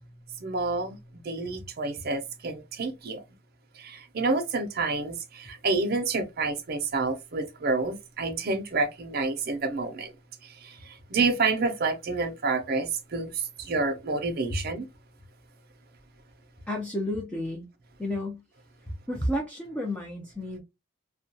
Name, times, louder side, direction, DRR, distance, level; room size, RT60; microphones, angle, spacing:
voice 1, 0.4-3.2 3.8-10.1 10.6-10.7 11.1-14.9, right 3 dB, 50° right, 0.5 m, -28 dB
voice 2, 16.7-17.7 18.0-18.4 18.9-20.6, left 1 dB, 5° left, 0.4 m, -31 dB
2.2 x 2.2 x 2.6 m
head